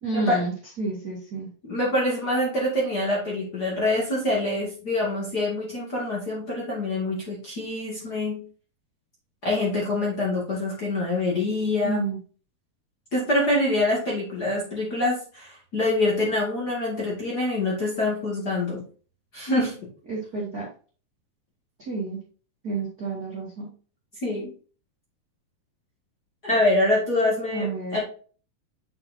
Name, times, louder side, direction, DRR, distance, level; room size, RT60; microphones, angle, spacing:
voice 1, 0.0-1.5 11.8-12.2 20.1-20.7 21.8-22.2 22.6-23.7 27.5-28.0, right 3 dB, 40° right, -4 dB, 1.5 m, -30 dB
voice 2, 1.6-8.4 9.4-12.0 13.1-18.8 19.3-19.8 24.2-24.5 26.4-28.0, left 2 dB, 30° left, -5 dB, 2.0 m, -25 dB
8.5 x 5.9 x 2.7 m, 0.39 s
omnidirectional pair, 4.5 m